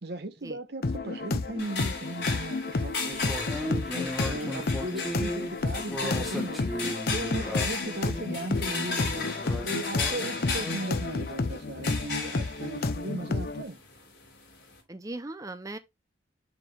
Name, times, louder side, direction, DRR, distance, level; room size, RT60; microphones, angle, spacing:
voice 1, 0.0-3.8 4.2-6.6 7.0-9.3 9.6-13.8, right 2 dB, 55° right, 0.9 m, -37 dB
sound 1, 0.8-13.6, left 3 dB, 55° left, 0.6 m, -31 dB
sound 2, 1.6-14.8, left 4 dB, 70° left, 3.3 m, -36 dB
sound 3, 3.1-8.4 9.0-11.3, equal, ahead, 1.3 m, -36 dB
voice 2, 14.9-15.8, right 2 dB, 20° right, 0.6 m, -39 dB
6.3 x 4.9 x 3.4 m
head